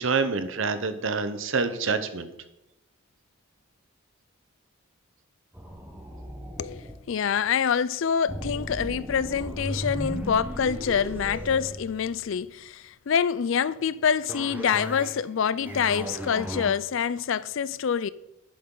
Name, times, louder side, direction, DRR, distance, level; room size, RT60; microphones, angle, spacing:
voice 1, 0.0-2.3, right 4 dB, 60° right, 0.9 m, -27 dB
sound 1, 5.5-7.0 8.3-12.5 14.3-15.2 15.5-16.7, equal, 10° right, 1.1 m, -36 dB
voice 2, 6.6-18.1, left 7 dB, 60° left, 0.4 m, -26 dB
11.0 x 8.6 x 3.9 m
head